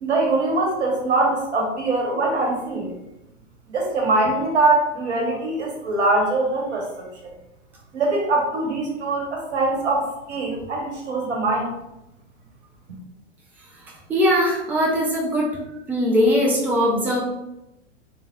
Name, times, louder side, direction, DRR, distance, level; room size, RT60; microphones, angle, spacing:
voice 1, 0.0-2.9 3.7-7.3 7.9-11.7 12.9-13.0, right 2 dB, 65° right, -1 dB, 1.2 m, -23 dB
voice 2, 14.1-15.5 15.9-17.2, equal, 5° right, -3 dB, 0.4 m, -20 dB
3.4 x 3.4 x 2.4 m, 0.90 s
figure-of-eight pair, 100°, 37 cm